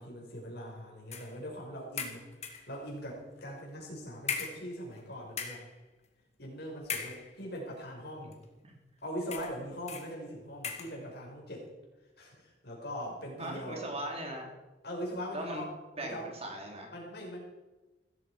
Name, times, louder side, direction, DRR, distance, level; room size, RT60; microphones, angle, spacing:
voice 1, 0.0-5.6 6.4-8.4 9.0-11.7 12.2-13.8 14.8-15.7 16.0-16.3 16.9-17.4, equal, 60° left, 0 dB, 5.4 m, -41 dB
sound 1, 1.1-1.4 2.0-2.7 3.5-3.7 4.3-5.0 5.3-5.7 6.8-7.6 8.3-8.4 9.3-9.6 9.9-10.1 10.6-11.0, left 6 dB, 35° left, 2.3 m, -38 dB
voice 2, 13.4-14.5 15.3-15.7 16.0-16.9, right 1 dB, 35° right, 1 dB, 3.4 m, -39 dB
16.0 x 14.5 x 5.1 m, 1.1 s
head